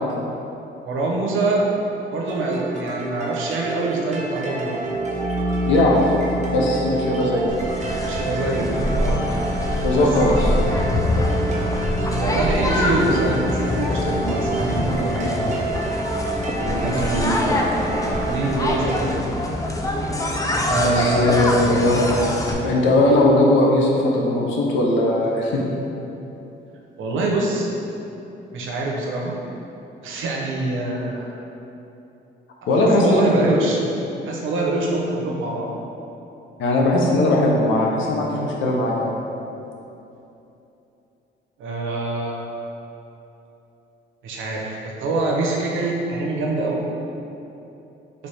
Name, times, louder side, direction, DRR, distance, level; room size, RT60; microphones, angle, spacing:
voice 1, 0.8-1.7 2.1-4.8 8.0-8.7 9.0-9.2 12.2-15.5 16.6-17.7 18.2-19.3 20.7-21.4 27.0-27.7 28.5-29.4 30.0-31.3 32.9-33.8 34.3-35.7 41.6-42.4 44.2-46.9, right 2 dB, 80° right, -2 dB, 0.8 m, -24 dB
sound 1, 2.3-19.0, right 2 dB, 35° right, 0.8 m, -29 dB
sound 2, 4.8-14.7, equal, 35° left, 1.0 m, -30 dB
voice 2, 5.7-6.1 6.5-7.5 9.8-10.5 20.8-22.1 22.5-25.6 32.7-33.4 36.6-39.2, left 1 dB, 75° left, -2 dB, 0.8 m, -19 dB
sound 3, 7.5-22.5, left 1 dB, 15° left, 0.4 m, -24 dB
4.1 x 3.4 x 3.4 m, 2.9 s
cardioid pair, 90°, 20 cm